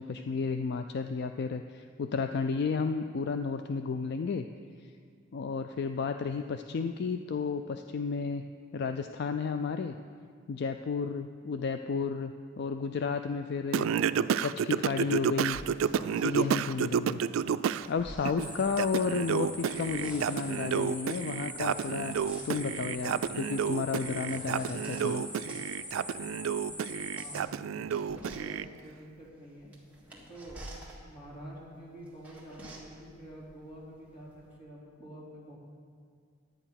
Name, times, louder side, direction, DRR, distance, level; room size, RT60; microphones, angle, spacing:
voice 1, 0.0-4.4 5.3-8.4 8.7-10.0 10.5-13.9 14.4-15.6 16.2-17.5 17.9-22.1 22.4-25.2, left 5 dB, 55° left, 7 dB, 0.4 m, -32 dB
Singing, 13.7-17.9 18.3-28.7, right 7 dB, 90° right, 0.3 m, -31 dB
sound 1, 15.5-16.6 17.4-19.2 19.6-20.7 21.5-25.1 25.5-34.6, right 1 dB, 10° right, 1.6 m, -50 dB
sound 2, 18.4-27.4, left 1 dB, 10° left, 0.7 m, -43 dB
voice 2, 27.1-29.7 30.3-35.6, right 1 dB, 30° left, -6 dB, 3.1 m, -48 dB
11.0 x 9.0 x 5.8 m, 2.2 s
head